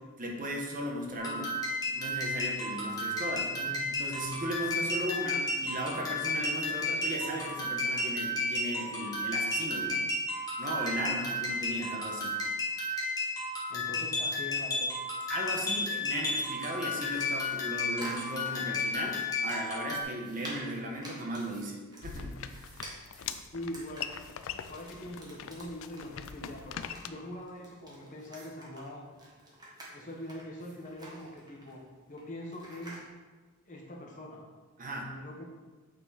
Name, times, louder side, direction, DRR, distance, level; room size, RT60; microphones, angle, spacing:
voice 1, 0.0-1.5 1.9-3.5 3.9-10.1 10.6-12.4 15.3-21.8 22.0-22.6 34.8-35.1, right 1 dB, 40° right, 0 dB, 1.1 m, -36 dB
sound 1, 1.1-20.0, left 2 dB, 15° left, 1.4 m, -33 dB
voice 2, 3.4-4.0 13.7-15.0 23.5-24.1 24.7-29.0 29.9-31.8 32.1-33.0 33.6-34.4 35.0-35.4, left 1 dB, 35° left, -1 dB, 1.2 m, -43 dB
sound 2, 15.6-33.1, right 1 dB, 20° right, 1.4 m, -50 dB
sound 3, 22.0-27.1, left 8 dB, 60° left, 0.4 m, -42 dB
8.8 x 4.5 x 4.3 m, 1.3 s
head